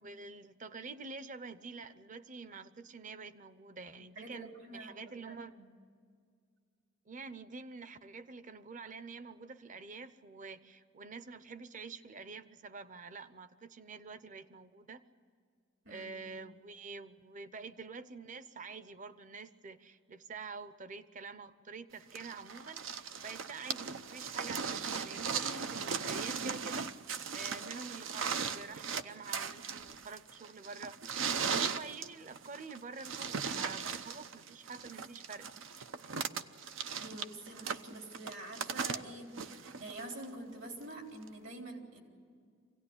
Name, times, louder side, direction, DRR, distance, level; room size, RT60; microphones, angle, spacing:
voice 1, 0.0-5.5 7.1-15.0 15.9-26.9 27.3-31.0 31.6-35.5, right 4 dB, 40° right, 13 dB, 0.8 m, -47 dB
voice 2, 4.2-5.7 11.0-11.1 15.8-16.1 37.0-42.0, right 1 dB, 75° right, 2 dB, 3.8 m, -47 dB
sound 1, 22.2-40.2 41.3-41.4, right 6 dB, 90° right, 0.8 m, -38 dB
25.0 x 17.5 x 9.8 m, 2.2 s
head